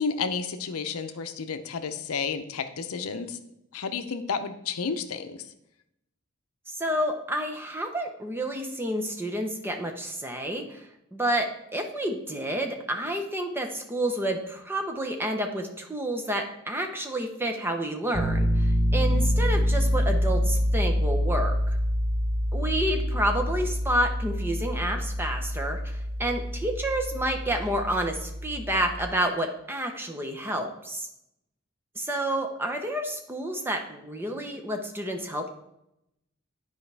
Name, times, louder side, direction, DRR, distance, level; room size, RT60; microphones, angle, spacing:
voice 1, 0.0-3.4 3.7-5.5, left 5 dB, 80° left, 9 dB, 0.6 m, -31 dB
voice 2, 6.7-21.8 22.5-31.1 32.0-35.5, right 1 dB, 10° right, 3 dB, 0.8 m, -29 dB
Piano, 18.1-29.0, equal, 30° right, 1.3 m, -26 dB
11.0 x 4.8 x 3.3 m, 0.83 s
head